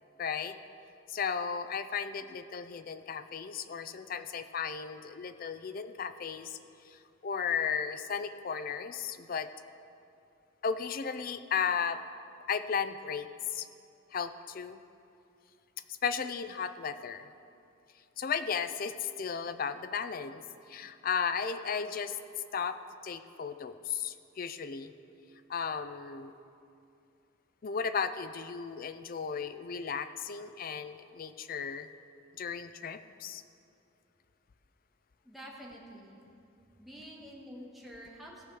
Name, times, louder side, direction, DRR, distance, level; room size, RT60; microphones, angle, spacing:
voice 1, 0.2-0.6 1.1-6.6 6.9-9.5 10.6-12.0 12.5-13.3 13.5-13.7 14.1-14.8 16.0-17.3 18.2-20.4 20.7-22.2 22.5-22.8 23.0-24.9 25.5-26.3 27.6-31.9 32.4-33.4, left 6 dB, 45° left, 11 dB, 0.4 m, -35 dB
voice 2, 35.2-36.2 36.8-38.6, equal, ahead, -3 dB, 1.4 m, -48 dB
17.0 x 6.2 x 4.9 m, 2.6 s
head